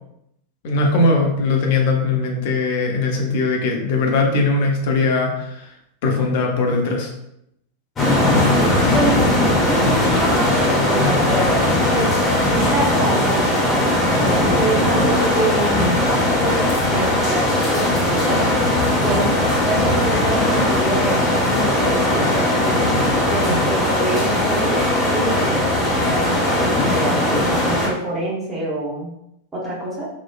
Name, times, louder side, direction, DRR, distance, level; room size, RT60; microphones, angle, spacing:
voice 1, 0.6-5.7 6.0-7.1, left 3 dB, 50° left, 1 dB, 0.6 m, -20 dB
sound 1, 8.0-27.9, left 1 dB, 20° left, 0.8 m, -18 dB
voice 2, 8.9-12.1 12.5-18.4 19.0-19.3 19.7-23.0 23.3-24.8 25.1-29.1 29.5-30.1, right 1 dB, 15° right, -5 dB, 1.0 m, -26 dB
3.1 x 2.1 x 2.4 m, 0.78 s
figure-of-eight pair, 90°, 0 cm